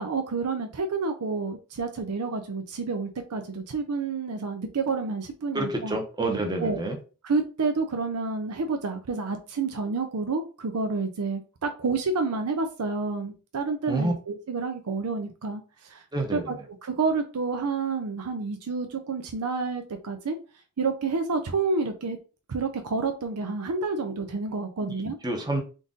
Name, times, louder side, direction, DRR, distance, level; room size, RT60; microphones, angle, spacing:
voice 1, 0.0-6.0 6.6-6.8 7.2-15.6 15.9-16.0 16.3-16.6 16.8-20.4 20.8-22.2 22.5-25.2, right 4 dB, 85° right, 6 dB, 0.5 m, -29 dB
voice 2, 5.5-7.0 13.9-14.1 16.1-16.5 24.8-25.6, right 2 dB, 20° right, 3 dB, 0.8 m, -28 dB
3.9 x 2.5 x 3.7 m, 0.34 s
head